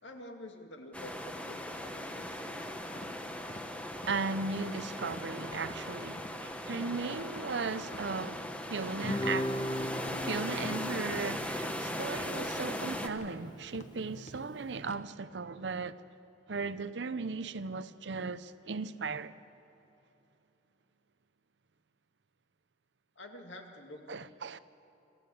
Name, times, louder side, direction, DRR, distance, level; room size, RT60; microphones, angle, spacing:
voice 1, 0.0-2.8 23.2-24.1, left 1 dB, 80° left, 2.3 m, -48 dB
sound 1, 0.9-13.1, left 1 dB, 5° left, 1.1 m, -39 dB
sound 2, 2.9-3.1 3.5-3.6 4.0-4.2 4.6-4.7 5.1-5.3 5.6-5.8 6.2-6.3 6.7-6.9 7.3-7.5 7.9-8.0 8.4-8.6 9.0-9.2 9.5-9.7 10.0-10.2 10.6-10.8 11.1-11.3 11.6-11.8 12.1-12.3 12.7-12.9 13.2-13.4 13.7-13.9 14.3-14.5 14.8-15.0, left 1 dB, 40° left, 1.2 m, -49 dB
voice 2, 4.0-9.6 10.2-16.0 16.5-19.4 24.1-24.6, right 4 dB, 70° right, 0.7 m, -37 dB
Guitar, 9.0-13.6, left 1 dB, 25° left, 0.8 m, -38 dB
26.5 x 14.0 x 8.6 m
head